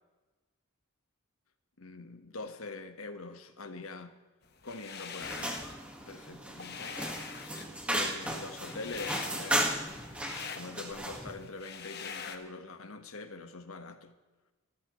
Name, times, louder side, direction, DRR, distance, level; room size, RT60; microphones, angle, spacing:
voice 1, 1.8-4.1 4.6-5.6 6.1-7.0 7.9-9.7 10.4-14.1, left 3 dB, 75° left, 1.4 m, -44 dB
sound 1, 4.6-5.7 6.1-12.4, left 6 dB, 50° left, 1.2 m, -43 dB
sound 2, 5.2-11.3, right 1 dB, 5° right, 1.7 m, -35 dB
25.0 x 13.0 x 3.2 m
head